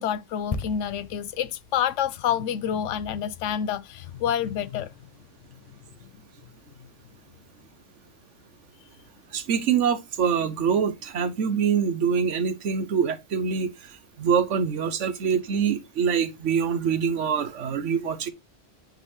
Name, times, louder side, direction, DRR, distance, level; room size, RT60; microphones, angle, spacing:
voice 1, 0.0-4.9, left 9 dB, 85° left, 0.9 m, -28 dB
sound 1, 0.5-4.2 4.4-4.6, left 4 dB, 40° left, 0.6 m, -39 dB
voice 2, 9.3-13.7 14.2-18.3, right 7 dB, 80° right, 1.2 m, -24 dB
9.2 x 4.0 x 3.0 m
omnidirectional pair, 1.2 m